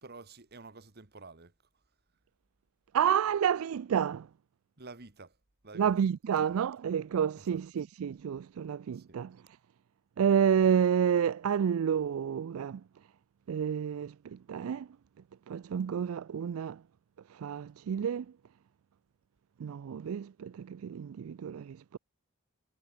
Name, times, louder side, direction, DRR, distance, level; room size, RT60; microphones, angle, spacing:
voice 1, 0.0-1.5 4.8-5.3 5.6-5.9 7.4-7.6 8.9-9.2, right 3 dB, 50° right, 1.6 m, -50 dB
voice 2, 2.9-4.3 5.7-9.4 10.2-12.8 13.5-14.9 15.5-16.8 17.3-18.3 19.6-22.0, right 8 dB, 75° right, 0.4 m, -29 dB
head